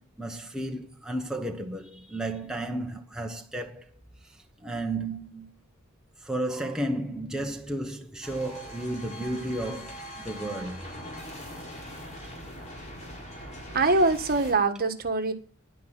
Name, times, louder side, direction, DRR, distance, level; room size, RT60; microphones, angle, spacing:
voice 1, 0.2-3.8 4.6-5.5 6.2-10.8, right 1 dB, 5° right, 1.1 m, -33 dB
sound 1, 8.2-14.5, equal, 35° left, 4.8 m, -42 dB
voice 2, 13.7-15.3, right 3 dB, 45° right, 1.6 m, -23 dB
11.0 x 10.0 x 7.5 m
head